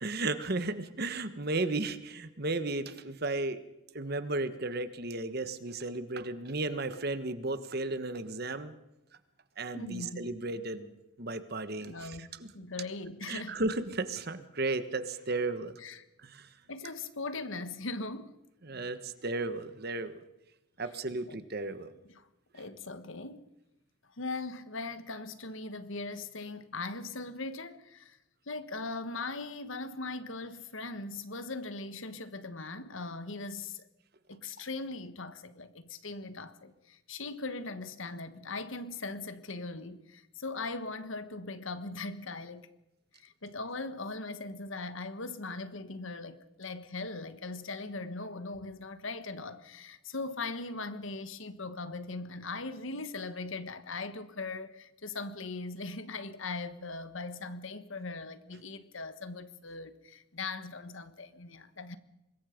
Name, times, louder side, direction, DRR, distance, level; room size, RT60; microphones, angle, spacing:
voice 1, 0.0-3.6 3.9-8.7 9.6-10.9 11.2-12.5 13.3-15.8 16.2-16.5 18.6-20.2 20.8-22.0, right 2 dB, 45° right, 1.4 m, -34 dB
voice 2, 9.7-10.2 11.8-13.6 15.8-16.0 16.7-18.3 21.3-21.4 22.1-22.3 22.5-23.5 24.2-28.2 28.5-33.8 34.3-42.7 43.1-62.0, left 3 dB, 65° left, 1.4 m, -40 dB
25.0 x 21.0 x 5.2 m
head